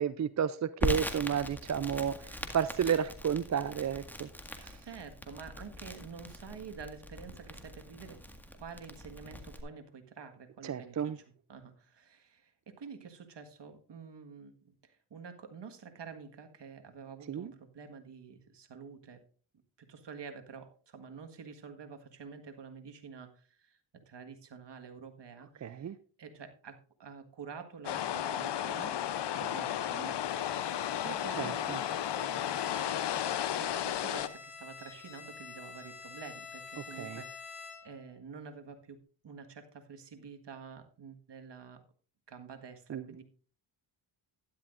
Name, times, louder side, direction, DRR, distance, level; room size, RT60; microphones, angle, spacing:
voice 1, 0.0-4.3 4.6-4.8 10.6-11.2 17.3-17.5 25.6-26.0 31.4-31.8 37.0-37.2 42.9-43.0, right 8 dB, 35° right, 15 dB, 0.5 m, -32 dB
Crackle, 0.8-9.6, left 1 dB, 5° left, 1.8 m, -41 dB
voice 2, 4.8-8.2 8.5-11.2 11.5-19.2 19.8-23.8 24.1-29.0 29.3-33.0 33.6-39.0 39.2-41.8 42.3-43.2, right 5 dB, 55° right, 6 dB, 1.7 m, -48 dB
sound 1, 27.8-34.3, left 10 dB, 55° left, 0.7 m, -33 dB
Bowed string instrument, 30.2-38.0, left 6 dB, 80° left, 2.8 m, -48 dB
12.5 x 11.0 x 2.5 m, 0.40 s
cardioid pair, 65°, 49 cm